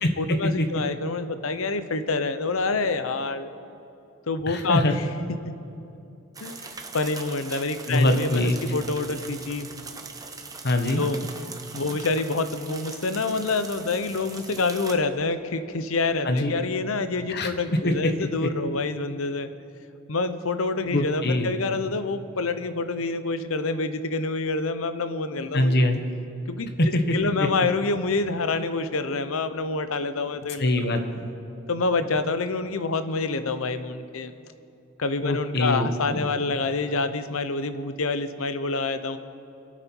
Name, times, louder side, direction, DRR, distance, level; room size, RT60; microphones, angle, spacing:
voice 1, 0.2-3.5 4.3-5.5 6.4-9.7 11.0-11.2 11.7-19.5 20.1-25.9 26.5-30.7 31.7-34.3 35.0-39.2, left 3 dB, 75° left, 11 dB, 0.8 m, -27 dB
voice 2, 4.5-4.9 7.9-8.6 10.6-11.0 16.2-16.5 17.3-17.5 17.8-17.9 18.4-18.5 20.9-21.5 25.5-26.0 26.8-27.2 30.6-31.0 35.2-36.2, left 1 dB, 50° left, 6 dB, 1.2 m, -23 dB
sound 1, 6.3-15.0, right 4 dB, 15° right, 0.9 m, -41 dB
26.5 x 9.1 x 4.6 m, 2.8 s
head